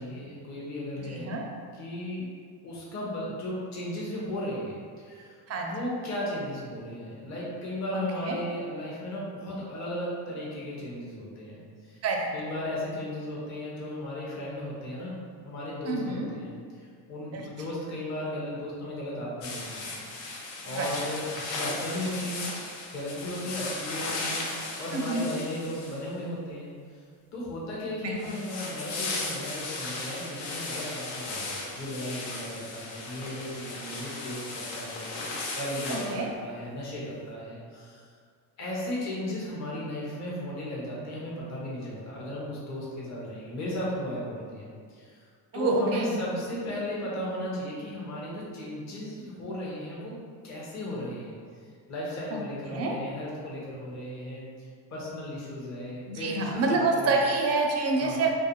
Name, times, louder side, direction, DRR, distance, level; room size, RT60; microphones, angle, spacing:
voice 1, 0.0-1.3 1.7-2.3 2.6-12.0 12.3-15.2 15.5-20.3 20.6-22.5 22.9-24.4 24.8-27.0 27.3-35.1 35.5-38.1 38.6-45.3 45.5-50.1 50.4-51.4 51.9-57.2 58.0-58.2, left 1 dB, 35° left, -6 dB, 0.7 m, -36 dB
voice 2, 1.1-1.4 5.5-5.7 7.9-8.4 12.0-12.3 15.8-16.3 17.3-17.4 20.7-20.9 24.9-25.2 28.0-28.3 35.9-36.3 45.5-46.2 52.3-52.4 52.7-53.0 56.1-58.3, right 3 dB, 35° right, 0 dB, 0.4 m, -27 dB
sound 1, 19.4-26.2 28.2-36.2, left 3 dB, 75° left, 0.6 m, -36 dB
2.3 x 2.1 x 2.9 m, 2.1 s
supercardioid pair, 85°, 46 cm